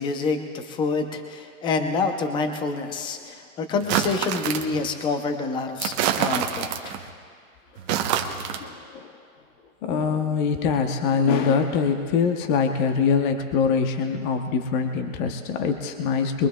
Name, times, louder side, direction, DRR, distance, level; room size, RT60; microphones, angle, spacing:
voice 1, 0.0-7.0, left 4 dB, 10° left, 6 dB, 0.6 m, -27 dB
sound 1, 3.8-4.8 5.8-7.0 7.8-8.6, right 9 dB, 30° right, 0.9 m, -26 dB
voice 2, 8.6-9.1 9.8-16.5, left 6 dB, 35° left, 5 dB, 0.9 m, -23 dB
25.0 x 22.5 x 2.3 m, 2.1 s
hypercardioid pair, 150°, 42 cm